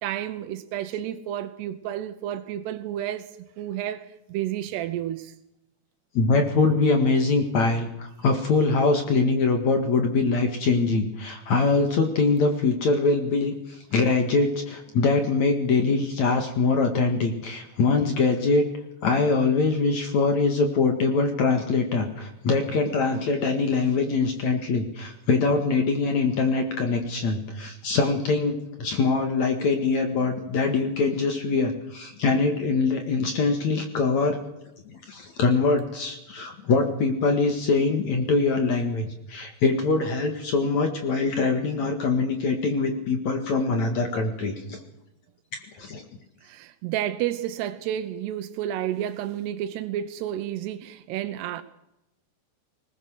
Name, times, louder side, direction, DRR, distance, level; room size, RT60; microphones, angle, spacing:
voice 1, 0.0-5.3 46.4-51.6, right 11 dB, 85° right, 9 dB, 3.0 m, -31 dB
voice 2, 6.1-13.5 13.9-18.7 19.0-34.4 34.9-44.8 45.5-46.0, left 4 dB, 50° left, 5 dB, 2.8 m, -23 dB
20.5 x 20.0 x 6.5 m, 0.87 s
omnidirectional pair, 4.7 m